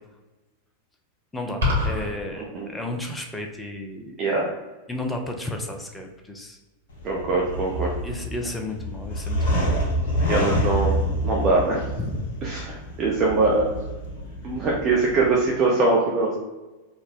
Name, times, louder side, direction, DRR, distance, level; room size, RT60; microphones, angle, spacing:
voice 1, 1.3-4.2 4.9-6.6 8.0-9.7 12.1-12.2, left 1 dB, 10° left, 3 dB, 0.6 m, -33 dB
sound 1, 1.6-2.1, left 2 dB, 70° right, 1.4 m, -22 dB
voice 2, 2.4-2.7 4.2-4.5 7.0-7.9 10.2-10.9 11.2-11.9 12.4-13.7 14.4-16.4, right 3 dB, 30° right, -3 dB, 0.7 m, -22 dB
sound 2, 6.9-15.4, equal, 60° left, 0.8 m, -27 dB
4.1 x 2.2 x 4.3 m, 1.1 s
figure-of-eight pair, 90°, 0 cm